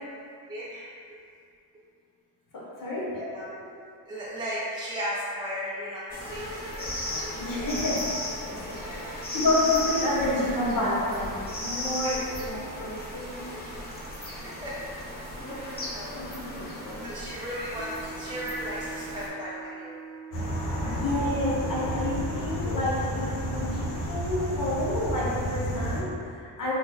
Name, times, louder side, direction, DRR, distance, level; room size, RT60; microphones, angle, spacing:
voice 1, 0.5-1.0 3.1-3.5 4.1-7.0 8.8-9.1 12.0-12.3 14.3-14.9 15.4-20.0 20.8-21.0, equal, 10° right, -8 dB, 0.4 m, -36 dB
voice 2, 2.5-3.1 7.3-8.1 8.4-13.4 16.1-17.0 20.8-26.7, left 1 dB, 50° left, -6 dB, 1.0 m, -29 dB
sound 1, 6.1-19.3, left 1 dB, 20° left, 0.8 m, -36 dB
Wind instrument woodwind instrument, 17.7-22.6, right 6 dB, 65° right, 0.6 m, -42 dB
sound 2, 20.3-26.0, equal, 80° left, 0.8 m, -31 dB
2.9 x 2.1 x 3.5 m, 2.3 s
supercardioid pair, 70°, 42 cm